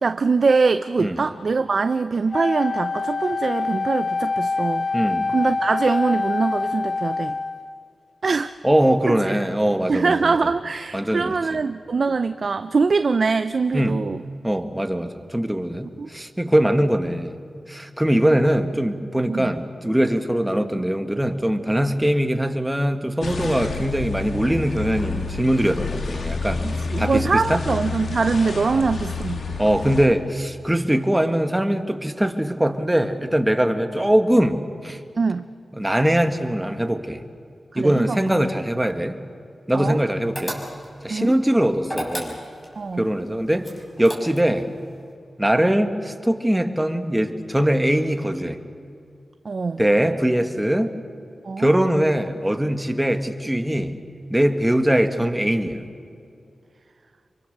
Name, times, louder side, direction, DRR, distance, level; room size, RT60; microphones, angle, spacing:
voice 1, 0.0-4.9 5.3-7.4 8.2-8.5 9.1-9.2 9.9-14.2 16.0-16.1 19.3-19.5 26.6-29.4 35.2-35.4 37.7-38.2 39.7-40.0 41.1-41.3 42.8-43.1 49.4-49.8 51.4-51.7, right 4 dB, 60° right, 10 dB, 0.6 m, -23 dB
Wind instrument woodwind instrument, 2.3-7.8, left 3 dB, 50° left, 0.7 m, -25 dB
voice 2, 4.9-5.3 8.6-10.3 10.9-11.4 13.7-14.0 14.4-17.4 17.7-27.6 28.7-28.8 29.6-35.0 35.7-37.2 37.7-39.2 39.7-40.6 41.0-42.4 43.0-43.7 44.0-44.7 45.4-48.6 49.8-50.9 51.6-53.9 54.3-55.8, right 1 dB, 10° right, 6 dB, 1.6 m, -21 dB
sound 1, 23.2-30.1, left 4 dB, 80° left, 2.1 m, -29 dB
sound 2, 40.4-41.0 41.8-42.7 43.6-44.6, equal, 10° left, 5.3 m, -32 dB
27.0 x 23.5 x 6.7 m, 2.5 s
wide cardioid pair, 75°, 0 cm